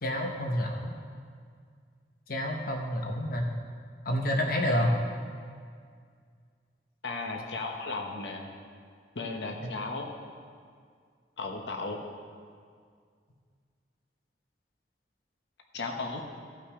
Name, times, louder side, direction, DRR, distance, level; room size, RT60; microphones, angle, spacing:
voice 1, 0.0-0.9 2.3-3.5 4.0-4.9, equal, 55° left, 2 dB, 0.9 m, -28 dB
voice 2, 7.0-8.5 9.1-10.1 11.4-12.0 15.7-16.2, left 3 dB, 85° left, 3 dB, 1.1 m, -35 dB
15.0 x 5.8 x 4.9 m, 2.1 s
head